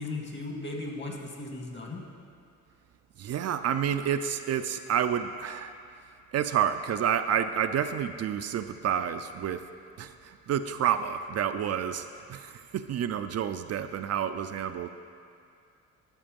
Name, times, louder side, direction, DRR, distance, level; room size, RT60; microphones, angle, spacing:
voice 1, 0.0-2.0, left 2 dB, 35° left, 1 dB, 1.7 m, -36 dB
voice 2, 3.2-5.7 6.3-9.6 10.0-14.9, right 9 dB, 55° right, 8 dB, 0.5 m, -29 dB
11.5 x 6.8 x 5.3 m, 2.4 s
cardioid pair, 90°, 30 cm